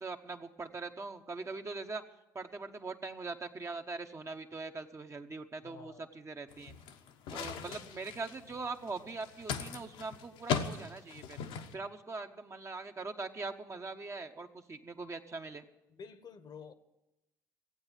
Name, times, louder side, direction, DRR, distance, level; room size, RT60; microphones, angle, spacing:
voice 1, 0.0-2.0 2.3-6.7 7.3-11.4 11.7-15.6, right 3 dB, 30° right, 1.3 m, -42 dB
voice 2, 5.6-6.1 7.3-7.9 15.9-16.7, left 6 dB, 45° left, 1.2 m, -50 dB
sound 1, 6.5-11.7, left 7 dB, 65° left, 1.2 m, -39 dB
15.5 x 9.0 x 9.0 m
hypercardioid pair, 55°, 10 cm